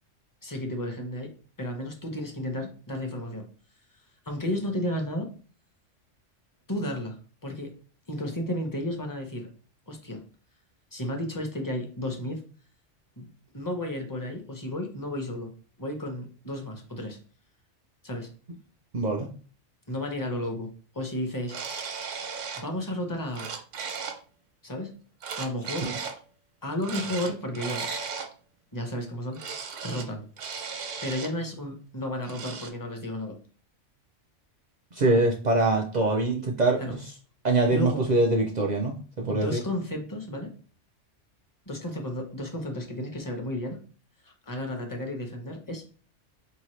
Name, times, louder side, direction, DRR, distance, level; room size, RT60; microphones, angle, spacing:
voice 1, 0.4-3.5 4.3-5.3 6.7-7.2 7.4-7.7 8.1-9.5 9.9-10.2 10.9-12.4 13.2-13.3 13.5-15.5 15.8-17.2 18.0-18.3 19.9-21.6 22.6-23.5 24.6-24.9 25.3-25.9 26.6-27.9 28.7-30.3 31.0-33.4 36.8-37.0 37.7-38.1 39.3-40.5 41.7-43.8 44.2-45.8, left 1 dB, 20° left, 3 dB, 0.6 m, -33 dB
voice 2, 18.9-19.3 25.8-25.9 34.9-37.0 37.4-39.6, right 2 dB, 55° right, 1 dB, 0.5 m, -24 dB
sound 1, 21.5-22.7 23.1-24.2 25.2-26.2 26.8-28.3 29.3-30.1 30.4-31.3 32.2-32.7, right 5 dB, 85° right, 1.0 m, -36 dB
4.2 x 2.8 x 3.1 m, 0.38 s
omnidirectional pair, 1.2 m